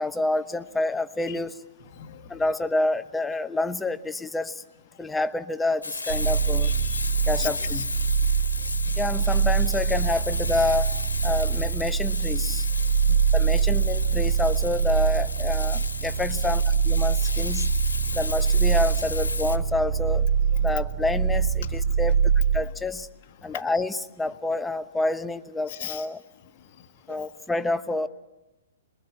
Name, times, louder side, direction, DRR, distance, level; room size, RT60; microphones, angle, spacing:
voice 1, 0.0-1.6 2.3-4.6 5.0-6.7 7.3-7.9 9.0-12.7 13.3-17.7 18.1-20.3 20.6-22.2 22.5-23.1 23.4-26.2 27.1-28.1, left 2 dB, 10° left, 10 dB, 1.1 m, -28 dB
voice 2, 1.9-2.4 6.6-7.0 7.4-7.8 13.0-13.3 23.5-23.6 25.7-26.0 27.1-27.3, left 12 dB, 50° left, 4 dB, 1.4 m, -37 dB
Frying (food), 5.8-19.6, left 3 dB, 85° left, 1.8 m, -34 dB
sound 1, 6.1-22.6, right 6 dB, 60° right, 0.9 m, -24 dB
29.0 x 22.0 x 8.6 m, 1.0 s
figure-of-eight pair, 115°, 0 cm